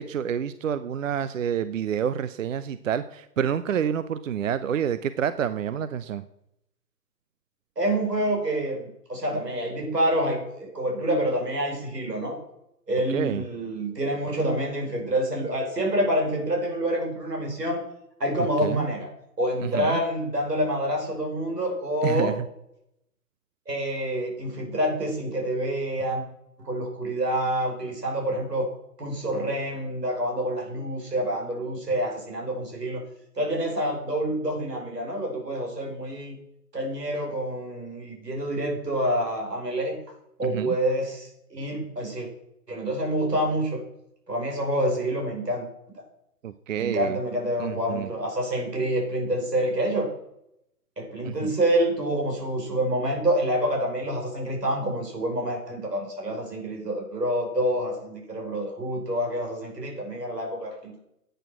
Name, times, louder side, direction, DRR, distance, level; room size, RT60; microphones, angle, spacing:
voice 1, 0.0-6.2 13.1-13.4 18.6-18.9 19.6-20.0 22.0-22.3 40.4-40.8 46.4-47.2 47.6-48.1 51.2-51.6, right 8 dB, 55° right, 14 dB, 0.7 m, -28 dB
voice 2, 7.8-12.4 12.9-17.8 18.2-19.1 19.4-22.4 23.7-26.2 26.6-28.7 29.0-33.0 33.4-36.4 36.7-40.0 40.4-42.3 42.7-43.8 44.3-45.7 46.0-46.1 46.8-50.1 51.0-61.0, right 1 dB, 85° right, 1 dB, 5.7 m, -27 dB
10.5 x 9.2 x 6.0 m, 0.79 s
figure-of-eight pair, 140°, 47 cm